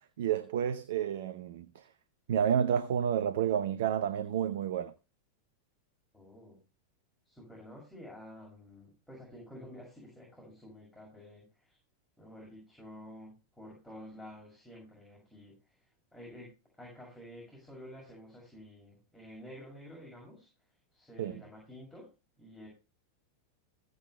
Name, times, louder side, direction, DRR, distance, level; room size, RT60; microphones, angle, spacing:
voice 1, 0.2-1.9 2.3-4.9 21.2-21.4, right 9 dB, 55° right, 0.7 m, -30 dB
voice 2, 6.1-6.6 7.2-11.8 12.2-15.7 16.1-20.5 20.9-22.1 22.4-22.7, equal, 5° left, 6.5 m, -50 dB
15.5 x 7.9 x 3.2 m
figure-of-eight pair, 90°, 0 cm